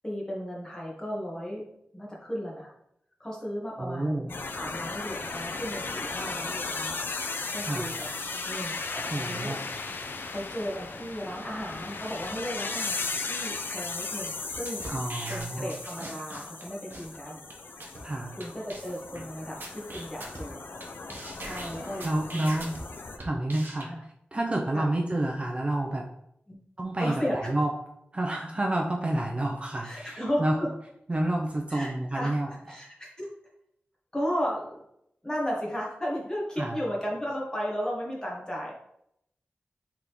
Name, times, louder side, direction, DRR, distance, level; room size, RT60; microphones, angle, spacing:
voice 1, 0.0-1.6 1.9-2.7 3.2-7.0 7.5-8.1 8.4-8.8 9.3-9.5 10.3-14.8 15.3-17.4 18.4-19.6 19.9-20.7 21.4-22.0 23.9-24.0 24.7-24.9 26.5-26.6 27.0-27.5 29.8-30.4 31.7-32.4 32.7-33.3 34.1-34.8 35.2-38.7, equal, 20° left, -3 dB, 1.3 m, -34 dB
voice 2, 3.8-4.3 7.6-7.9 9.0-9.6 14.9-15.7 18.0-18.4 22.0-22.7 23.2-23.9 24.3-26.1 26.8-27.7 28.1-30.6 31.1-32.5 36.6-36.8, right 1 dB, 30° right, 0 dB, 0.5 m, -29 dB
sound 1, 4.3-23.2, left 3 dB, 60° left, 0.4 m, -36 dB
sound 2, 14.5-16.6 16.9-17.1 17.5-17.6 17.8-18.0 18.4-18.5 18.7-19.2 19.6-20.8 21.1-22.8 23.2-23.8, right 1 dB, 55° right, 0.8 m, -41 dB
3.8 x 3.4 x 3.0 m, 0.76 s
wide cardioid pair, 90°, 4 cm